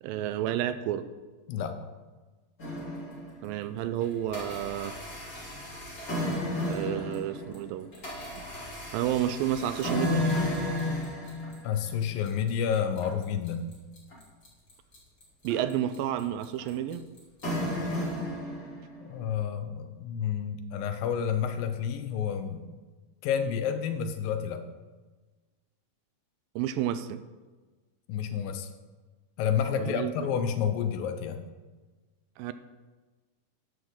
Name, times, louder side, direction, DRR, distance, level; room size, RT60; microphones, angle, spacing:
voice 1, 0.0-1.1 3.4-5.0 6.6-7.9 8.9-10.3 15.4-17.0 26.6-27.2 29.8-30.3 32.4-32.5, right 11 dB, 85° right, 12 dB, 2.3 m, -30 dB
sound 1, 2.6-3.5 4.0-19.1, left 1 dB, 25° left, 3.3 m, -33 dB
voice 2, 11.6-13.7 19.0-22.7 23.2-24.6 28.1-28.7 29.4-31.4, left 8 dB, 80° left, 8 dB, 2.6 m, -30 dB
13.5 x 11.0 x 3.9 m, 1.3 s
omnidirectional pair, 4.1 m